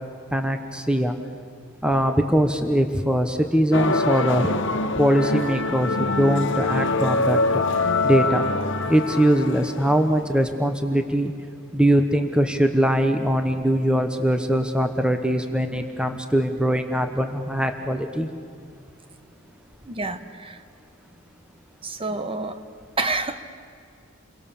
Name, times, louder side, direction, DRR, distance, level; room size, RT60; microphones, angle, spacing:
voice 1, 0.3-1.1 1.8-4.5 5.0-7.4 8.0-8.4 8.9-11.3 11.7-18.3, equal, 5° right, 6 dB, 0.9 m, -21 dB
sound 1, 3.7-10.3, left 3 dB, 60° left, 1.3 m, -24 dB
voice 2, 19.9-20.6 21.8-22.6 23.0-23.4, right 3 dB, 25° right, 10 dB, 1.1 m, -28 dB
29.5 x 23.0 x 7.1 m, 2.4 s
head